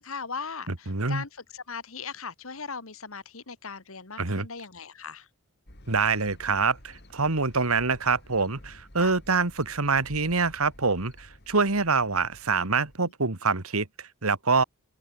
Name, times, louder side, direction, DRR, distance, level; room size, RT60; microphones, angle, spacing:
voice 1, 0.0-5.3 9.0-9.1 13.0-13.1, left 5 dB, 75° left, 2.1 m, -38 dB
voice 2, 0.7-1.2 4.2-4.5 5.9-14.6, right 4 dB, 90° right, 2.2 m, -25 dB
sound 1, 5.7-13.0, left 1 dB, 50° left, 6.9 m, -51 dB
open air
head